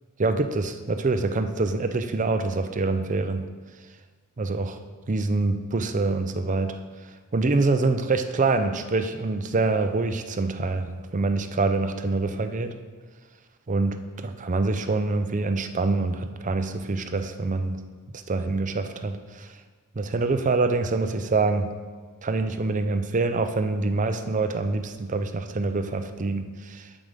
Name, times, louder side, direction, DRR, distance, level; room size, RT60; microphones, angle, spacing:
voice 1, 0.2-3.4 4.4-4.8 5.1-6.8 7.3-12.7 13.7-17.8 18.1-19.6 20.0-21.7 22.2-26.9, right 3 dB, 35° right, 8 dB, 0.5 m, -25 dB
7.5 x 5.0 x 6.7 m, 1.5 s
head